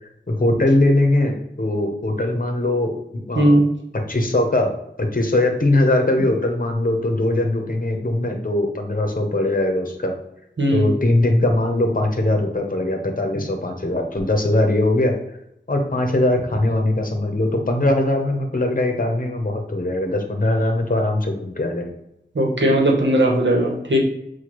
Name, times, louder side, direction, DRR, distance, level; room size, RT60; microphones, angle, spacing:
voice 1, 0.0-3.6 4.1-4.7 5.0-10.1 10.7-15.1 15.7-21.9, left 1 dB, 50° left, 4 dB, 0.8 m, -21 dB
voice 2, 3.3-3.7 10.6-10.9 22.3-24.0, right 1 dB, 90° right, -1 dB, 0.9 m, -17 dB
6.1 x 2.3 x 3.0 m, 0.80 s
wide cardioid pair, 45°, 19 cm